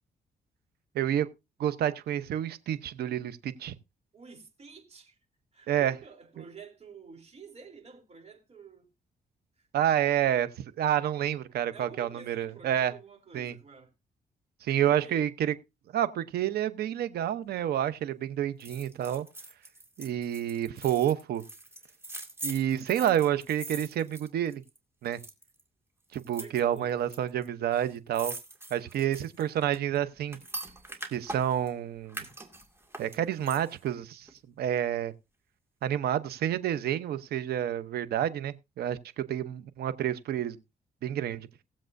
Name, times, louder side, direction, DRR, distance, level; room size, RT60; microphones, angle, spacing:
voice 1, 0.9-1.3 1.6-3.7 5.7-5.9 6.4-6.5 9.7-12.9 13.3-13.6 14.6-15.5 15.9-19.3 20.0-21.4 22.4-24.6 25.0-25.2 26.1-28.3 28.7-30.4 31.1-32.2 33.0-34.3 34.6-35.1 35.8-40.6 41.0-41.5, right 10 dB, 85° right, 0.9 m, -29 dB
voice 2, 4.1-5.2 5.5-8.9 9.6-9.7 11.7-13.9 14.7-15.2 26.4-26.9 28.9-29.2, right 6 dB, 40° right, 3.3 m, -49 dB
sound 1, 18.6-24.8 25.1-25.6 26.1-27.2 27.4-27.5 27.7-31.7 32.1-33.9 34.3-34.4, right 2 dB, 15° right, 2.1 m, -42 dB
19.0 x 7.5 x 2.6 m
cardioid pair, 95°, 16 cm